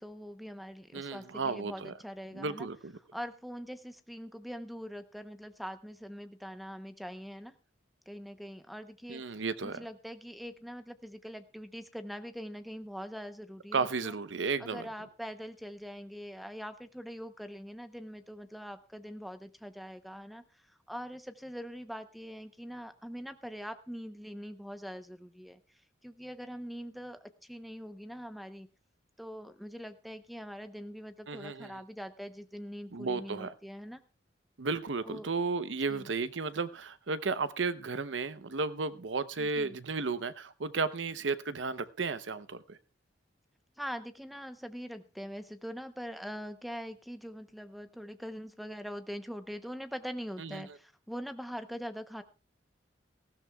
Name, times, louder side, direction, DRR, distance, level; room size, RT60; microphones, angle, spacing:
voice 1, 0.0-2.7 3.1-7.5 8.1-14.1 14.6-20.4 20.9-25.6 26.0-28.7 29.2-34.0 35.0-35.3 35.9-36.1 39.4-39.8 43.8-52.2, equal, ahead, 0.8 m, -43 dB
voice 2, 0.9-1.9 2.3-2.9 9.1-9.8 13.7-14.9 31.3-31.8 32.9-33.5 34.6-42.8 50.4-50.6, right 4 dB, 85° right, 0.8 m, -34 dB
19.0 x 15.0 x 2.3 m
head